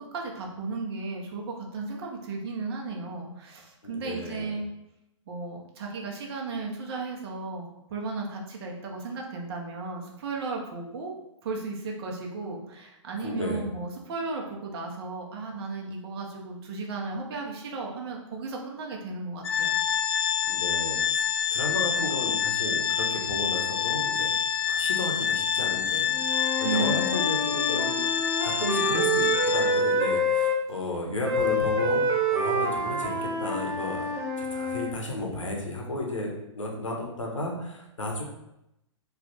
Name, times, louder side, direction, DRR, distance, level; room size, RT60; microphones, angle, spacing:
voice 1, 0.1-4.6 5.3-11.1 11.4-19.7 26.6-27.2, right 3 dB, 50° right, 0 dB, 0.9 m, -35 dB
voice 2, 3.8-4.6 13.2-13.6 20.4-21.2 21.5-24.3 24.7-32.0 32.3-34.1 34.4-38.2, left 2 dB, 85° left, 0 dB, 1.0 m, -34 dB
Organ, 19.4-30.1, left 8 dB, 55° left, 0.4 m, -27 dB
Wind instrument woodwind instrument, 26.1-30.6 31.2-34.9, equal, 15° right, 0.8 m, -27 dB
3.3 x 2.4 x 4.0 m, 0.87 s
hypercardioid pair, 120°, 16 cm